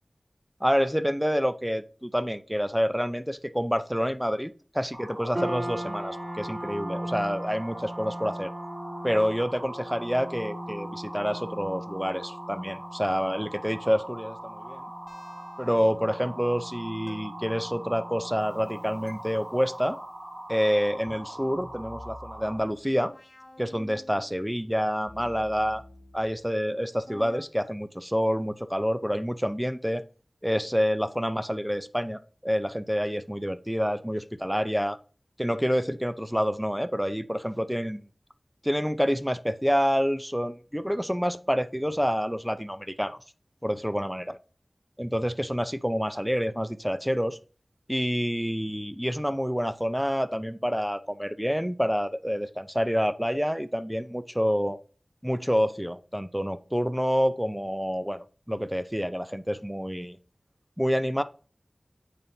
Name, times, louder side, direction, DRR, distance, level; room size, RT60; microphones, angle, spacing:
voice 1, 0.6-8.5 9.0-14.8 15.6-20.0 20.5-23.1 23.6-25.8 26.1-30.0 30.4-35.0 35.4-38.1 38.6-43.2 43.6-44.4 45.0-47.4 47.9-54.8 55.2-60.2 60.8-61.2, equal, ahead, 0.6 m, -28 dB
sound 1, 4.9-22.6, right 1 dB, 55° right, 2.6 m, -42 dB
sound 2, 5.3-19.8, equal, 15° right, 1.7 m, -40 dB
sound 3, 13.1-13.8 15.1-15.8 17.1-17.2 19.1-19.2 21.1-24.4 25.1-26.5 27.1-27.4, left 1 dB, 40° left, 1.7 m, -48 dB
9.0 x 4.3 x 2.7 m
wide cardioid pair, 50°, 0 cm